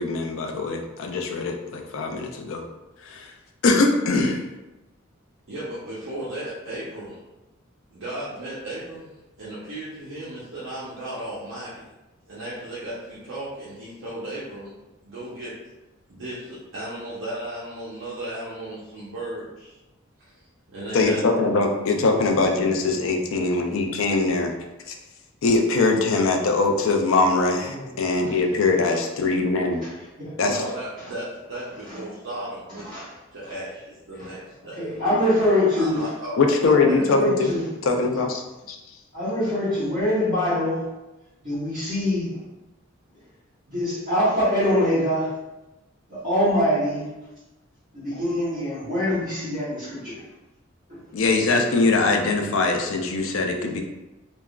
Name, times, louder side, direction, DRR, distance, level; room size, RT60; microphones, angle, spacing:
voice 1, 0.0-2.6 3.0-3.3 3.6-4.4 20.9-24.5 24.9-25.0 25.4-29.8 30.4-30.6 36.4-37.5 37.8-38.4 38.7-38.8 51.1-53.8, left 3 dB, 75° left, 3 dB, 0.4 m, -22 dB
voice 2, 5.5-7.2 7.9-9.1 9.4-11.8 12.3-14.7 15.0-15.5 16.1-19.8 20.2-20.4 20.7-21.2 30.4-32.9 33.3-34.9 35.8-36.3 36.6-37.0, right 1 dB, 65° right, -9 dB, 0.7 m, -35 dB
voice 3, 32.8-33.1 34.2-34.3 34.7-36.1 36.8-37.6 39.1-40.8 41.4-42.4 43.7-45.3 46.1-47.1 47.9-50.2 50.9-51.0, left 1 dB, 40° right, -15 dB, 1.4 m, -24 dB
3.4 x 2.0 x 2.3 m, 1.0 s
head